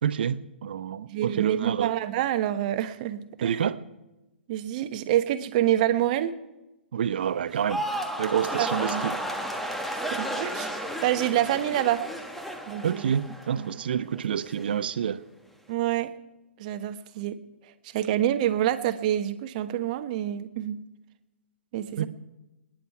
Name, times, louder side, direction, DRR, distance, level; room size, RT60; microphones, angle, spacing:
voice 1, 0.0-2.0 3.4-3.8 6.9-7.8 8.2-9.2 12.8-15.2 22.0-22.1, right 8 dB, 60° right, 14 dB, 0.8 m, -28 dB
voice 2, 1.1-3.6 4.5-6.3 8.6-9.0 10.1-10.8 11.0-12.1 12.7-13.1 13.6-13.8 15.7-16.1 16.6-17.4 17.8-20.8 21.7-22.1, right 12 dB, 40° right, 9 dB, 1.2 m, -27 dB
sound 1, 7.5-13.8 14.1-14.6, equal, 5° left, 1.4 m, -33 dB
25.0 x 10.5 x 4.7 m, 0.99 s
figure-of-eight pair, 120°, 6 cm